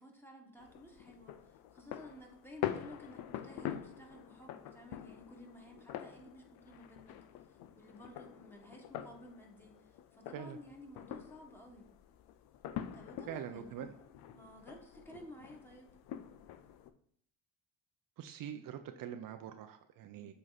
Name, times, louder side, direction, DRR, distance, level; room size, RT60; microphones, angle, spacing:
voice 1, 0.0-11.9 12.9-13.8 14.3-15.9 20.1-20.3, left 1 dB, 5° left, 1 dB, 1.7 m, -54 dB
sound 1, 0.6-16.9, left 11 dB, 70° left, 0.6 m, -46 dB
voice 2, 13.3-13.9 18.2-20.3, right 9 dB, 60° right, 7 dB, 0.7 m, -44 dB
7.6 x 3.1 x 4.1 m, 0.69 s
supercardioid pair, 75°, 38 cm